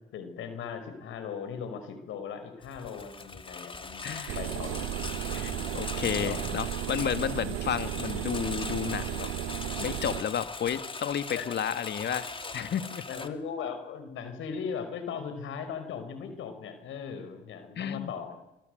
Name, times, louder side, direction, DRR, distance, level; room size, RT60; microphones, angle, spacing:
voice 1, 0.0-4.9 6.0-6.4 11.3-11.6 13.1-18.4, left 6 dB, 80° left, 8 dB, 5.5 m, -38 dB
Engine, 2.6-13.3, left 3 dB, 25° left, 2.6 m, -40 dB
voice 2, 4.0-4.4 5.3-9.3 9.8-12.3 12.5-13.1 17.8-18.1, left 8 dB, 60° left, 11 dB, 2.2 m, -32 dB
sound 1, 4.3-10.2, right 14 dB, 85° right, 1.0 m, -34 dB
28.0 x 26.0 x 8.1 m, 0.93 s
cardioid pair, 90°, 20 cm